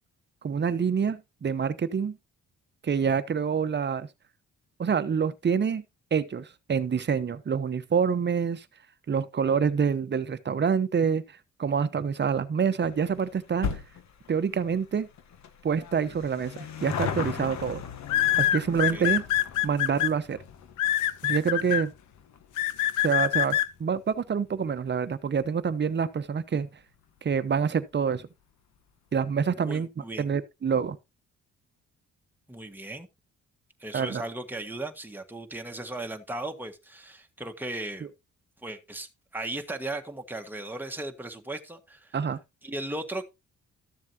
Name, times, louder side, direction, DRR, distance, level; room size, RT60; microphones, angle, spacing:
voice 1, 0.4-2.2 2.8-4.1 4.8-5.8 6.1-8.6 9.1-11.2 11.6-13.7 14.3-15.1 15.6-17.8 18.4-19.2 19.6-20.4 21.2-21.9 23.0-26.7 27.2-28.3 29.1-31.0 33.9-34.2 38.0-38.1 42.1-42.4, right 6 dB, 35° right, 1.0 m, -27 dB
sound 1, 12.9-25.6 25.9-26.0 26.9-27.0 27.2-27.3 27.5-27.6, left 7 dB, 65° left, 1.5 m, -39 dB
sound 2, 16.6-16.9 18.1-20.1 20.8-21.8 22.6-23.7, left 13 dB, 80° left, 0.8 m, -24 dB
voice 2, 29.6-30.3 32.5-33.1 33.8-38.1 38.6-42.1 42.6-43.3, right 2 dB, 5° right, 1.6 m, -37 dB
13.5 x 7.3 x 2.9 m
cardioid pair, 90°, 30 cm